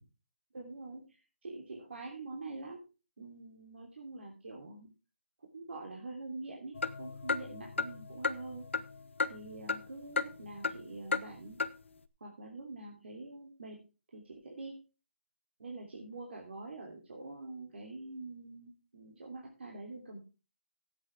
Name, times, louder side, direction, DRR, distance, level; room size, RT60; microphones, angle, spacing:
voice 1, 0.5-2.8 3.2-4.9 5.5-8.7 9.3-11.6 12.2-13.8 14.1-14.8 15.6-20.2, right 2 dB, 70° right, -1 dB, 3.2 m, -45 dB
sound 1, 6.8-9.9 10.2-10.8 11.1-11.3 11.6-11.7, left 4 dB, 85° left, 0.9 m, -34 dB
16.0 x 8.7 x 3.6 m, 0.32 s
hypercardioid pair, 175°, 6 cm